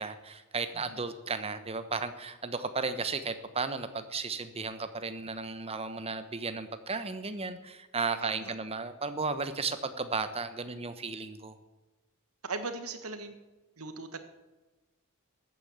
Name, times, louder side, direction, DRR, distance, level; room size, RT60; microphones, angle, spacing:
voice 1, 0.0-11.6, right 4 dB, 30° right, 10 dB, 1.1 m, -34 dB
voice 2, 8.2-8.5 12.4-13.4 13.8-14.2, right 3 dB, 80° right, 8 dB, 1.8 m, -39 dB
14.5 x 9.2 x 8.0 m, 1.1 s
head